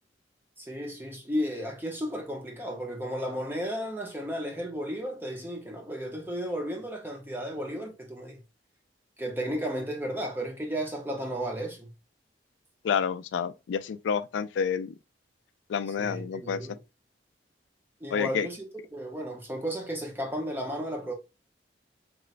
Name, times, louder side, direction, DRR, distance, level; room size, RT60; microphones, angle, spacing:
voice 1, 0.6-8.4 9.2-11.9 16.0-16.8 18.0-21.1, equal, 10° right, 0.7 m, -34 dB
voice 2, 12.8-14.9 15.7-16.6 18.1-18.5, left 7 dB, 85° left, 0.3 m, -29 dB
3.1 x 3.1 x 2.4 m
head